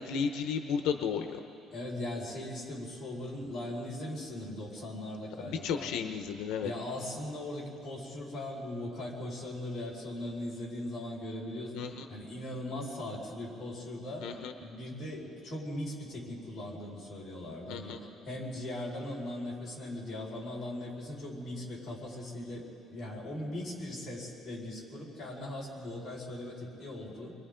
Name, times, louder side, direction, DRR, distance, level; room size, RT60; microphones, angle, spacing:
voice 1, 0.0-1.3 5.4-6.7 11.7-12.0 14.2-14.5 17.7-18.0, left 6 dB, 85° left, 6 dB, 0.9 m, -33 dB
voice 2, 1.7-5.9 6.6-11.7 12.1-14.3 14.6-18.0 18.2-27.3, left 1 dB, 20° left, -6 dB, 5.1 m, -39 dB
30.0 x 22.5 x 3.8 m, 2.7 s
cardioid pair, 180°, 0 cm